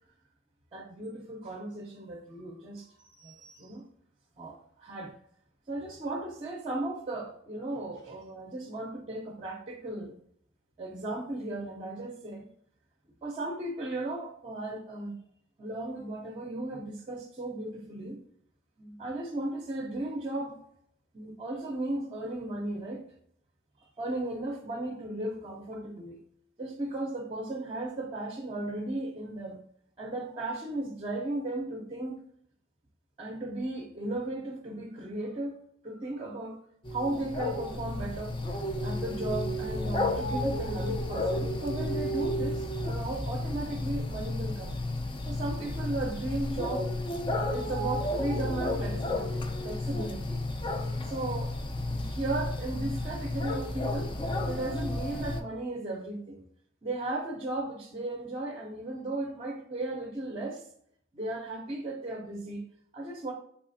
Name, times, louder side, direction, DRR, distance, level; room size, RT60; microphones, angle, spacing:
voice 1, 0.7-3.8 4.4-5.1 5.7-10.1 10.8-12.5 13.2-15.2 15.6-18.2 18.8-20.6 21.1-23.0 24.0-26.2 26.6-29.6 30.0-32.2 33.2-35.6 35.8-36.6 36.9-38.4 38.8-44.7 45.3-46.9 47.3-50.4 51.1-51.5 51.9-54.1 54.4-56.4 56.8-60.7 61.1-62.6 62.9-63.3, right 2 dB, 25° right, 0 dB, 0.6 m, -36 dB
sound 1, 36.8-55.4, left 1 dB, 25° left, 0.4 m, -32 dB
4.8 x 3.2 x 2.6 m, 0.66 s
head